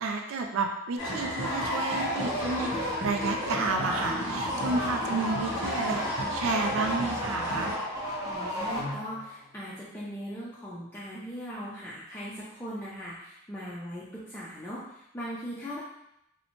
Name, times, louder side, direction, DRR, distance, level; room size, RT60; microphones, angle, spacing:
voice 1, 0.0-2.7 3.0-6.0 6.3-7.8, right 3 dB, 70° right, 3 dB, 0.3 m, -31 dB
sound 1, 1.0-7.7, equal, 60° left, 0.6 m, -35 dB
sound 2, 1.0-9.3, equal, 15° right, 0.8 m, -33 dB
voice 2, 8.2-15.8, equal, 10° left, -8 dB, 0.4 m, -39 dB
2.7 x 2.1 x 2.8 m, 0.80 s
head